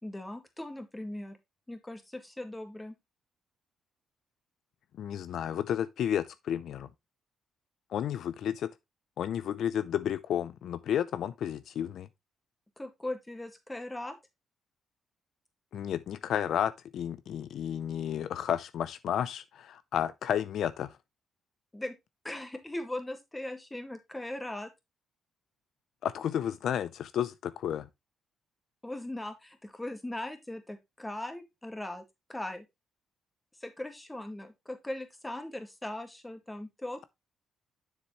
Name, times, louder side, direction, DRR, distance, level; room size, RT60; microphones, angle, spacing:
voice 1, 0.0-1.4 1.7-2.9 12.8-14.2 21.7-22.0 22.2-24.7 28.8-32.0 32.3-32.7 33.6-37.0, left 1 dB, 10° left, 1.8 m, -39 dB
voice 2, 5.0-6.9 7.9-8.7 9.2-12.1 15.7-20.9 26.0-27.9, left 9 dB, 70° left, 0.4 m, -32 dB
7.2 x 6.6 x 3.0 m
cardioid pair, 90°, 0 cm